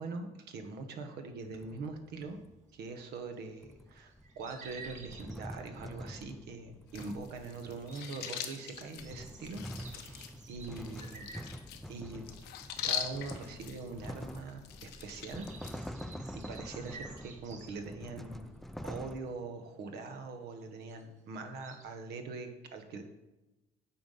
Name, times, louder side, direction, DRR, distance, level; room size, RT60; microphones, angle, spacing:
voice 1, 0.0-2.4 2.7-11.3 11.9-12.3 12.8-16.0 16.3-18.6 18.8-23.0, right 3 dB, 75° right, 6 dB, 1.0 m, -43 dB
sound 1, 1.3-2.6 3.6-8.2 8.7-19.2, equal, ahead, 0.4 m, -46 dB
sound 2, 2.2-21.8, right 4 dB, 45° right, 1.2 m, -54 dB
sound 3, 6.9-15.7, left 9 dB, 85° left, 0.8 m, -42 dB
8.6 x 3.9 x 5.5 m, 1.0 s
cardioid pair, 110°, 17 cm